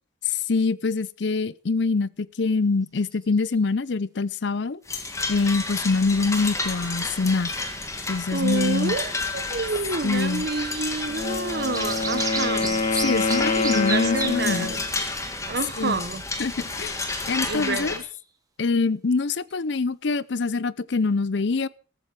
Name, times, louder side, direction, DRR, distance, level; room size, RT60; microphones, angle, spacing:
voice 1, 0.5-4.8 5.3-7.5 8.1-8.9 10.0-10.5 13.0-14.7 15.8-16.0 16.4-17.0 17.3-17.9 18.6-21.7, left 4 dB, 60° left, 0.6 m, -24 dB
sound 1, 3.1-3.4 6.8-7.0 7.7-8.2 11.2-14.4 16.2-16.5 17.8-18.2, right 5 dB, 20° right, 1.4 m, -34 dB
sound 2, 4.9-18.0, left 3 dB, 15° left, 2.0 m, -31 dB
voice 2, 8.3-12.8 13.5-14.8 15.5-16.2 17.5-18.0, right 3 dB, 55° right, 0.9 m, -29 dB
Wind instrument woodwind instrument, 11.1-14.9, left 3 dB, 35° left, 2.6 m, -26 dB
14.0 x 13.0 x 4.8 m
head